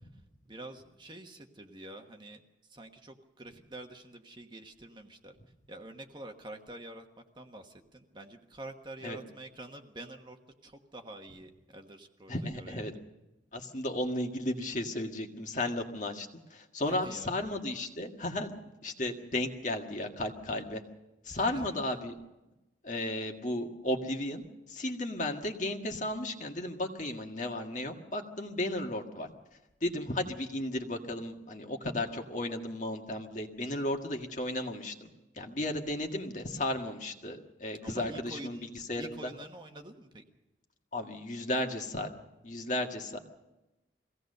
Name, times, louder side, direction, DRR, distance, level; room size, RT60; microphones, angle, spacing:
voice 1, 0.5-2.4 2.7-5.4 5.7-13.0 16.8-17.3 21.3-22.0 29.8-29.9 37.8-40.2, right 1 dB, 25° right, 4 dB, 1.3 m, -47 dB
voice 2, 12.3-12.9 13.5-18.5 18.8-20.8 21.3-22.1 22.8-29.3 29.8-35.1 35.4-39.3 40.9-42.1 42.4-43.2, left 1 dB, 40° left, 3 dB, 1.8 m, -34 dB
23.5 x 17.0 x 6.7 m, 1.0 s
head